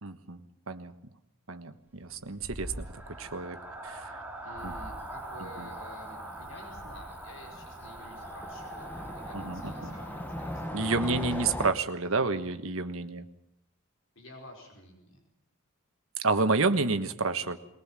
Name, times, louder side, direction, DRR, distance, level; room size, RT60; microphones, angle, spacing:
voice 1, 0.0-0.9 1.5-2.9 3.2-3.6 3.8-4.1 4.6-4.7 5.6-5.7 9.3-10.0 10.7-13.2 16.2-17.6, right 3 dB, 70° right, 9 dB, 1.4 m, -30 dB
sound 1, 2.0-12.0, right 1 dB, 10° right, 2.4 m, -43 dB
voice 2, 4.4-11.0 12.2-12.4 14.1-15.2, left 1 dB, 60° left, 0 dB, 4.8 m, -50 dB
Cricket / Motor vehicle (road), 4.6-11.7, left 1 dB, 10° left, 1.1 m, -41 dB
21.5 x 19.5 x 7.5 m, 0.82 s
head